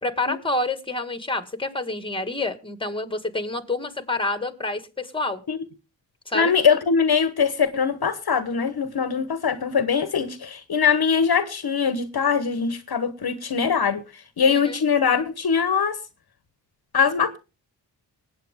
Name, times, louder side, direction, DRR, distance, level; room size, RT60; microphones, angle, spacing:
voice 1, 0.0-5.4 6.3-6.5 14.5-14.8, left 2 dB, 10° left, 1.9 m, -28 dB
voice 2, 6.3-16.0 16.9-17.4, left 6 dB, 55° left, 1.2 m, -22 dB
19.5 x 8.8 x 3.6 m
cardioid pair, 60°, 44 cm